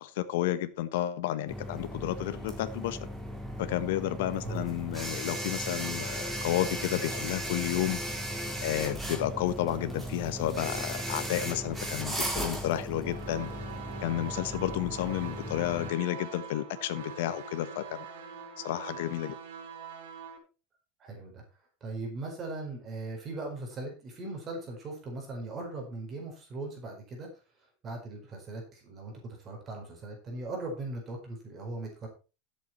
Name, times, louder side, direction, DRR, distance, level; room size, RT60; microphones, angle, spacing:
voice 1, 0.0-3.0 3.6-8.0 8.6-13.5 14.0-18.0 18.6-19.3, left 13 dB, 75° left, 1.1 m, -31 dB
sound 1, 1.5-15.9, equal, 5° right, 3.9 m, -36 dB
sound 2, 13.0-20.4, right 6 dB, 90° right, 4.7 m, -44 dB
voice 2, 21.0-21.4 21.8-27.4 27.8-32.1, right 2 dB, 25° right, 4.7 m, -39 dB
12.5 x 8.1 x 4.4 m
supercardioid pair, 155°, 0 cm